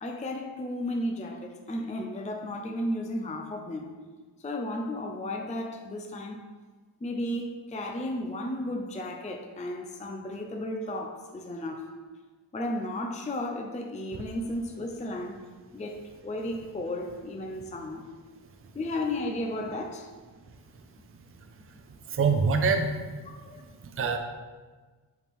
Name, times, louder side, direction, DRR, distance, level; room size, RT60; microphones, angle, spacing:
voice 1, 0.0-3.9 4.4-6.4 7.0-11.9 12.5-15.4 15.7-18.1 18.7-20.1 23.4-23.6, left 1 dB, 15° left, 3 dB, 0.4 m, -34 dB
voice 2, 22.1-23.0 23.8-24.2, right 5 dB, 30° right, 4 dB, 0.6 m, -25 dB
8.5 x 6.0 x 3.5 m, 1.4 s
wide cardioid pair, 175°, 45 cm